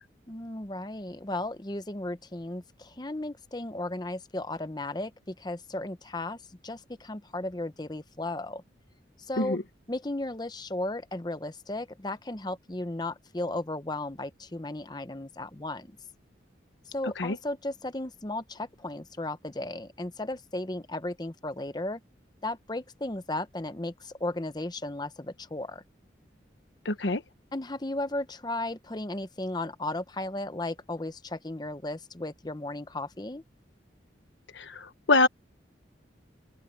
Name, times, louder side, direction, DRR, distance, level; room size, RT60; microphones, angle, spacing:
voice 1, 0.3-8.6 9.2-9.6 9.9-16.0 16.9-22.0 22.4-25.8 27.5-33.4, left 2 dB, 20° left, 0.9 m, -35 dB
voice 2, 26.8-27.2 34.5-35.3, left 2 dB, 75° left, 1.1 m, -25 dB
open air
head